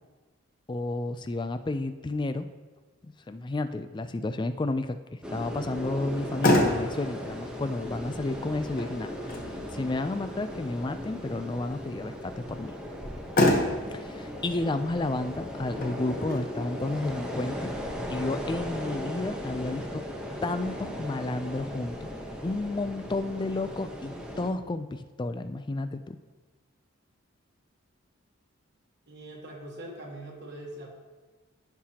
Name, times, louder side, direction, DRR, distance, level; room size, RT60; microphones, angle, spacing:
voice 1, 0.7-2.5 3.0-5.0 5.3-9.1 9.7-12.7 13.9-17.7 18.1-20.0 20.4-22.1 22.4-26.2, left 2 dB, 20° left, 10 dB, 0.3 m, -31 dB
sound 1, 5.2-24.5, equal, 5° right, 0.9 m, -37 dB
Motor vehicle (road), 6.0-19.0, left 1 dB, 40° left, 1.1 m, -31 dB
voice 2, 29.1-30.9, right 1 dB, 55° right, -1 dB, 1.2 m, -42 dB
14.5 x 5.8 x 2.9 m, 1.3 s
head